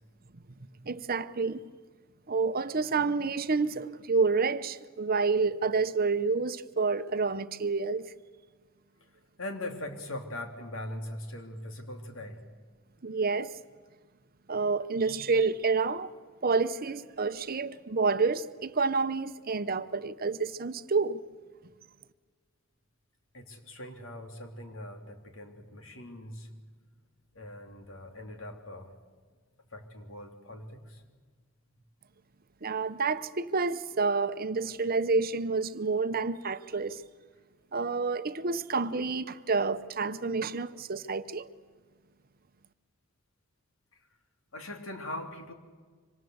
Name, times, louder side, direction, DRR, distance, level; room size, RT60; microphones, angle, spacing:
voice 1, 0.8-1.6 2.3-8.1 13.0-13.6 14.5-16.1 16.4-21.2 32.6-37.0 37.7-41.5, right 4 dB, 45° right, 0.8 m, -29 dB
voice 2, 9.4-12.4 23.3-26.5 27.3-28.9 29.7-31.1 44.5-45.5, left 1 dB, 70° left, 3.4 m, -41 dB
26.0 x 25.5 x 8.0 m
head